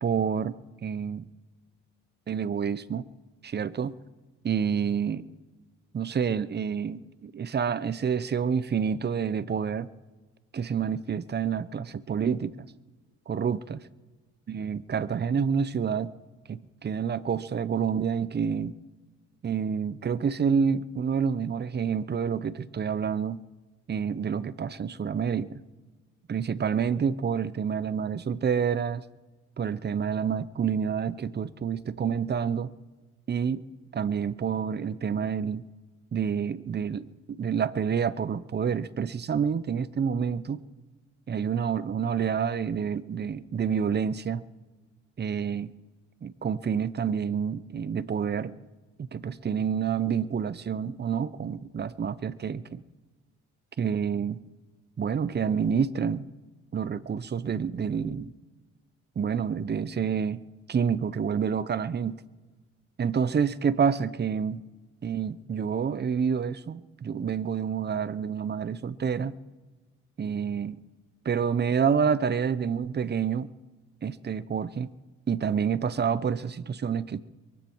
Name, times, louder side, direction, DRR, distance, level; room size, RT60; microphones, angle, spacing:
voice 1, 0.0-1.3 2.3-3.1 3.4-3.9 4.4-5.3 5.9-9.9 10.5-12.7 13.3-13.8 14.5-16.1 16.5-18.7 19.4-23.4 23.9-25.6 26.3-29.0 29.6-32.7 33.3-33.6 33.9-35.7 36.1-40.6 41.3-44.4 45.2-45.7 46.2-48.5 49.1-52.8 53.8-54.4 55.0-56.3 56.7-58.3 59.2-60.4 60.7-62.2 63.0-64.6 65.0-69.3 70.2-70.8 71.2-73.5 74.0-74.9 75.3-77.2, right 7 dB, 35° right, 17 dB, 0.8 m, -28 dB
23.0 x 11.5 x 4.6 m, 1.3 s
cardioid pair, 90°, 30 cm